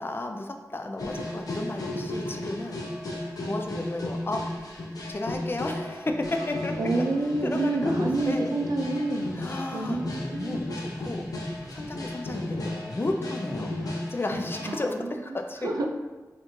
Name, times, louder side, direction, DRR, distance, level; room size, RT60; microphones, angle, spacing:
voice 1, 0.0-4.5 5.1-6.9 7.4-8.5 9.3-11.3 11.7-15.9, left 2 dB, 35° left, 4 dB, 0.4 m, -33 dB
sound 1, 1.0-14.8, left 1 dB, 80° left, 0.6 m, -34 dB
voice 2, 6.8-9.4 9.7-10.6 14.7-14.8 15.6-15.9, right 2 dB, 80° right, 2 dB, 0.4 m, -28 dB
sound 2, 7.1-13.0, equal, ahead, 0.8 m, -48 dB
4.2 x 2.5 x 2.6 m, 1.2 s
wide cardioid pair, 55°, 6 cm